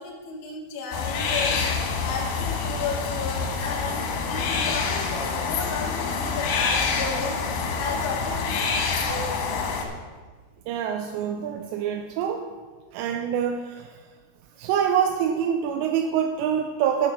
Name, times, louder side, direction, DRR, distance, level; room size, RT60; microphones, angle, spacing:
voice 1, 0.0-1.6 2.0-7.3 7.8-9.9, left 4 dB, 50° left, -4 dB, 2.9 m, -33 dB
sound 1, 0.9-9.9, left 5 dB, 80° left, 3.3 m, -27 dB
voice 2, 10.7-12.5 12.9-14.0 14.6-17.1, right 8 dB, 90° right, 4 dB, 2.8 m, -25 dB
10.0 x 6.9 x 6.2 m, 1.4 s
omnidirectional pair, 5.0 m